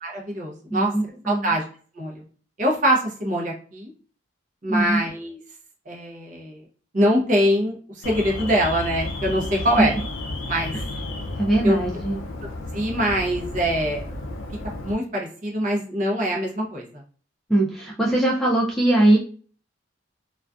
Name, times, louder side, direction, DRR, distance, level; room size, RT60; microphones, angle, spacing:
voice 1, 0.0-0.9 1.2-1.6 2.0-2.2 2.6-3.9 4.6-5.4 5.9-6.6 6.9-9.9 10.5-10.7 11.6-11.8 12.7-14.1 14.8-16.8, equal, 40° right, 0 dB, 0.6 m, -23 dB
voice 2, 0.7-1.5 4.7-5.0 9.8-9.9 10.7-10.8 11.4-12.2 17.5-19.2, right 1 dB, ahead, -4 dB, 0.4 m, -21 dB
Alarm, 8.0-14.9, left 2 dB, 85° left, 0.4 m, -32 dB
2.5 x 2.3 x 2.2 m, 0.42 s
head